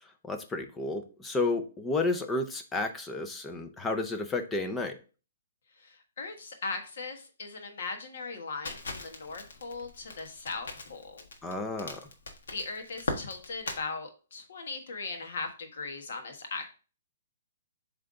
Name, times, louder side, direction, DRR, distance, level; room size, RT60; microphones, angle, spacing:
voice 1, 0.2-4.9 11.4-12.0, left 3 dB, 10° left, 6 dB, 0.5 m, -31 dB
voice 2, 5.7-11.2 12.5-16.7, left 4 dB, 55° left, 4 dB, 1.4 m, -39 dB
Crackle, 8.6-13.8, left 3 dB, 90° left, 1.5 m, -39 dB
7.6 x 3.4 x 3.7 m, 0.35 s
hypercardioid pair, 175°, 0 cm